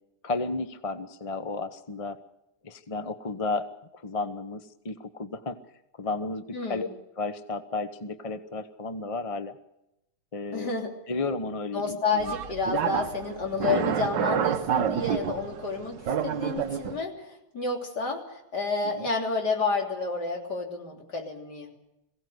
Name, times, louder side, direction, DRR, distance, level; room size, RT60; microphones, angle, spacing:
voice 1, 0.2-2.2 2.6-3.7 3.9-5.6 6.0-6.9 7.2-9.6 10.3-10.7 11.1-12.3 13.6-13.8 18.9-19.1, left 3 dB, 30° left, 10 dB, 0.6 m, -33 dB
voice 2, 6.5-6.9 10.5-10.9 11.7-21.7, left 4 dB, 50° left, 1 dB, 3.9 m, -30 dB
sound 1, 12.2-17.0, right 9 dB, 60° right, 1.5 m, -29 dB
22.0 x 17.0 x 7.9 m, 0.88 s
omnidirectional pair, 2.3 m